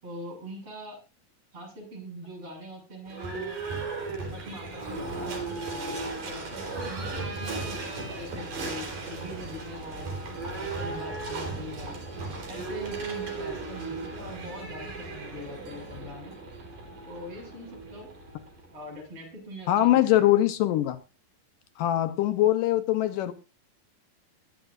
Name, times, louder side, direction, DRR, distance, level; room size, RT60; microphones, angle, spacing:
voice 1, 0.0-1.0 1.5-3.7 4.2-6.0 6.2-7.8 8.1-10.1 10.6-12.0 12.3-16.3 17.0-18.1 18.7-20.3, equal, 40° right, 1 dB, 7.7 m, -42 dB
Livestock farm animals working animals / Bell, 3.1-18.9, right 3 dB, 60° right, 5.2 m, -36 dB
voice 2, 19.7-21.0 21.8-23.3, left 14 dB, 75° left, 9 dB, 2.1 m, -22 dB
23.0 x 10.5 x 2.6 m, 0.30 s
omnidirectional pair, 4.4 m